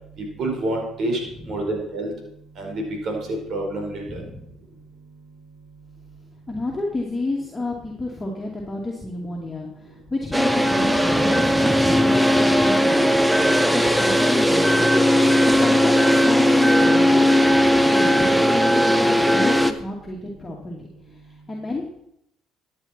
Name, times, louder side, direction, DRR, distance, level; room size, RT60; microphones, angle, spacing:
voice 1, 0.2-1.2 1.4-2.1 2.6-3.2 3.5-4.2, right 2 dB, 60° right, 1 dB, 4.9 m, -27 dB
voice 2, 4.0-4.4 6.5-13.3 13.7-14.9 15.2-20.9 21.5-21.9, left 2 dB, 20° left, -3 dB, 2.5 m, -31 dB
sound 1, 10.3-19.7, equal, 5° right, 0.9 m, -17 dB
13.5 x 9.5 x 4.4 m, 0.75 s
supercardioid pair, 85°, 0 cm